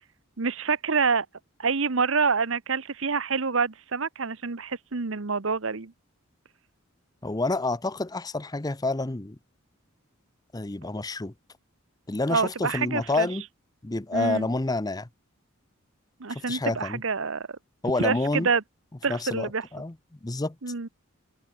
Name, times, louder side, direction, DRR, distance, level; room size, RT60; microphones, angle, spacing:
voice 1, 0.4-1.3 1.6-5.9 12.3-13.3 14.1-14.5 16.2-17.6 18.0-18.6 19.0-19.6 20.6-20.9, right 5 dB, 65° right, 1.0 m, -27 dB
voice 2, 7.2-9.4 10.5-11.3 12.1-13.4 13.8-15.1 16.3-17.0 17.8-18.5 19.1-20.6, left 2 dB, 20° left, 0.7 m, -28 dB
head